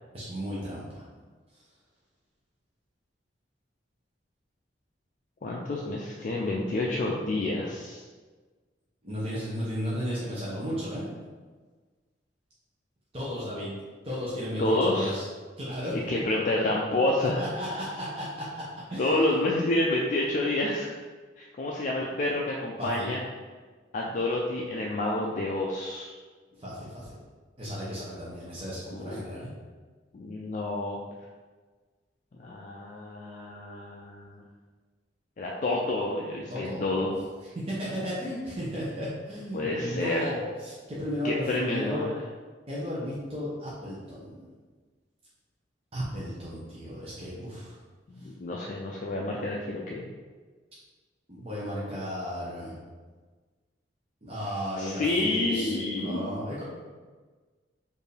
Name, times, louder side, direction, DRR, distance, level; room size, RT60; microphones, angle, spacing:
voice 1, 0.1-1.0 9.0-11.1 13.1-13.8 14.0-15.3 15.6-15.9 17.2-18.5 18.9-19.5 22.8-23.1 26.6-27.1 27.6-29.5 36.5-37.1 37.7-42.1 42.7-44.4 45.9-47.8 51.3-52.7 54.2-56.6, equal, 35° right, -8 dB, 0.8 m, -34 dB
voice 2, 5.4-8.0 14.6-15.1 16.1-17.4 19.0-20.9 21.4-23.2 23.9-26.2 28.9-29.3 30.1-31.0 32.4-34.4 35.4-37.1 39.5-40.2 41.2-42.1 48.1-50.1 54.8-56.3, left 2 dB, 45° left, -2 dB, 0.4 m, -29 dB
4.5 x 2.6 x 3.3 m, 1.4 s
head